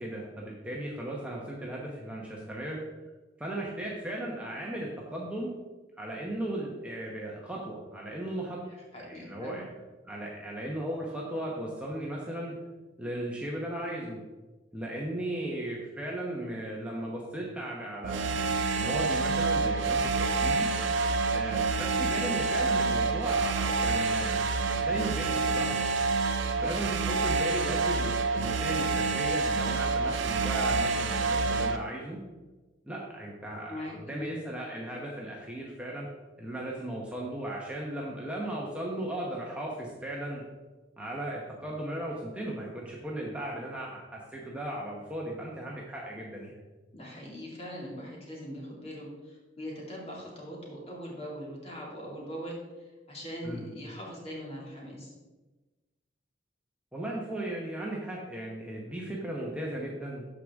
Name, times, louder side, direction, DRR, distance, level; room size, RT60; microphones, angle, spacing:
voice 1, 0.0-2.8 3.4-5.5 6.0-8.6 9.0-9.6 10.0-12.5 13.0-14.2 14.7-18.5 18.8-20.7 21.3-25.9 26.6-32.2 32.9-36.1 36.4-40.4 41.0-46.5 53.4-53.7 56.9-60.3, right 1 dB, 5° right, -3 dB, 0.9 m, -36 dB
voice 2, 8.9-9.6 33.7-34.4 46.9-55.1, equal, 35° left, -3 dB, 2.4 m, -41 dB
sound 1, 18.0-31.8, right 3 dB, 80° right, 0.5 m, -28 dB
12.5 x 4.9 x 3.6 m, 1.2 s
head